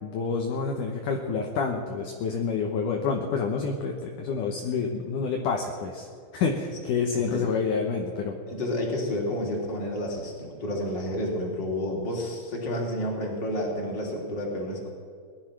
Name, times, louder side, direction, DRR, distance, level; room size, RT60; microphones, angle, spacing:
voice 1, 0.0-8.3, left 5 dB, 70° left, 2 dB, 2.4 m, -28 dB
voice 2, 7.1-7.5 8.5-14.9, left 1 dB, 30° left, -1 dB, 3.5 m, -30 dB
19.0 x 12.0 x 6.0 m, 2.1 s
omnidirectional pair, 4.2 m